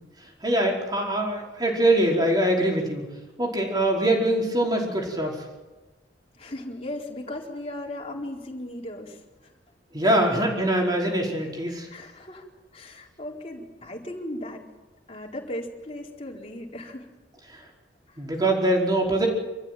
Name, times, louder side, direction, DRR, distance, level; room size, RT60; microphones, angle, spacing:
voice 1, 0.4-3.1 3.4-5.4 9.9-11.9 17.5-17.6 18.2-19.3, right 1 dB, 25° right, -1 dB, 4.9 m, -23 dB
voice 2, 6.3-9.5 10.0-10.2 11.9-12.5 12.7-14.7 15.1-17.1 18.1-18.2, left 1 dB, 35° left, -2 dB, 4.4 m, -37 dB
27.0 x 15.0 x 9.3 m, 1.2 s
head